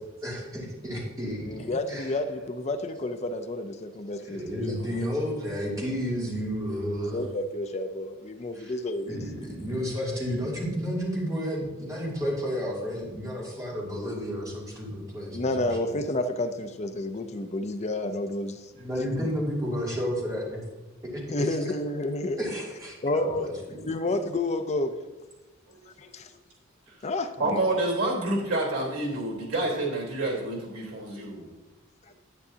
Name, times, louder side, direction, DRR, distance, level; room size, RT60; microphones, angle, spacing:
voice 1, 0.2-2.1 4.2-7.2 8.5-8.7 9.1-15.9 18.8-20.6 21.1-21.5 22.4-23.9, equal, 20° right, -5 dB, 2.7 m, -32 dB
voice 2, 1.4-4.6 4.9-5.1 7.1-9.6 15.3-18.7 19.0-19.3 21.3-22.4 23.0-23.5 23.9-24.9 26.0-26.3 27.0-27.6, left 2 dB, 35° left, 8 dB, 0.5 m, -30 dB
voice 3, 27.4-31.5, right 2 dB, 90° right, -3 dB, 3.5 m, -28 dB
10.5 x 9.6 x 2.8 m, 1.1 s
head